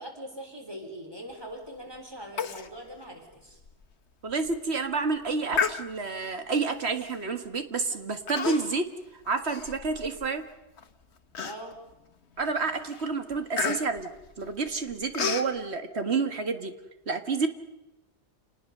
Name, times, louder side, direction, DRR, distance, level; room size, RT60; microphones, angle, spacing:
voice 1, 0.0-3.6 11.4-11.7, equal, 20° right, 3 dB, 4.1 m, -42 dB
Human voice, 2.4-2.7 3.0-3.1 3.6-3.7 4.3-4.6 5.5-6.2 7.0-7.2 8.3-8.9 9.2-10.3 10.8-10.9 11.3-11.9 12.4-12.6 12.9-15.5, left 6 dB, 75° left, 1.4 m, -32 dB
voice 2, 4.2-8.9 9.3-10.4 12.4-14.1 14.4-16.7 17.1-17.5, right 4 dB, 70° right, 8 dB, 1.9 m, -29 dB
28.0 x 19.5 x 6.7 m, 0.96 s
omnidirectional pair, 1.1 m